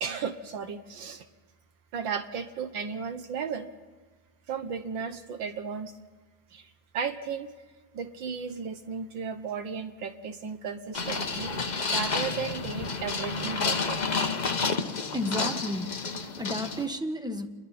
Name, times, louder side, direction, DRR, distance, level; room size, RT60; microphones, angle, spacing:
voice 1, 0.0-1.3 1.9-3.7 4.5-5.9 6.5-7.5 7.9-11.5 11.9-14.3, right 6 dB, 70° right, 8 dB, 1.7 m, -35 dB
sound 1, 10.9-16.9, left 4 dB, 40° left, 0.6 m, -30 dB
voice 2, 15.1-17.5, left 1 dB, 5° right, 6 dB, 0.8 m, -32 dB
30.0 x 22.5 x 4.2 m, 1.3 s
omnidirectional pair, 2.2 m